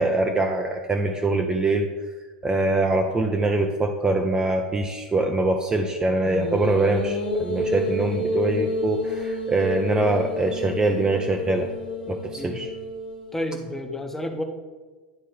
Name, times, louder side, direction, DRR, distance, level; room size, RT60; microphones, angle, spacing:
voice 1, 0.0-1.9 2.4-11.7 12.1-12.7, right 2 dB, 15° right, 3 dB, 0.5 m, -23 dB
sound 1, 6.2-13.6, left 2 dB, 80° left, 1.1 m, -29 dB
voice 2, 13.3-14.4, left 1 dB, 5° left, 5 dB, 0.8 m, -31 dB
9.4 x 3.3 x 4.7 m, 1.3 s
hypercardioid pair, 95°, 5 cm